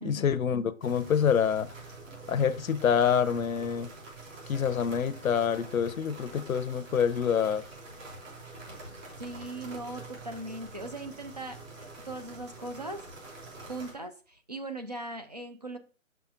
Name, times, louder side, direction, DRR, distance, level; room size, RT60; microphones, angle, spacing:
voice 1, 0.0-1.7 2.3-3.9 4.5-7.6, left 7 dB, 75° left, 0.7 m, -26 dB
sound 1, 0.8-13.9, right 2 dB, 65° right, 3.2 m, -46 dB
voice 2, 9.2-13.0 13.6-15.8, right 2 dB, 30° right, 0.4 m, -39 dB
6.6 x 5.8 x 2.4 m
hypercardioid pair, 160°, 42 cm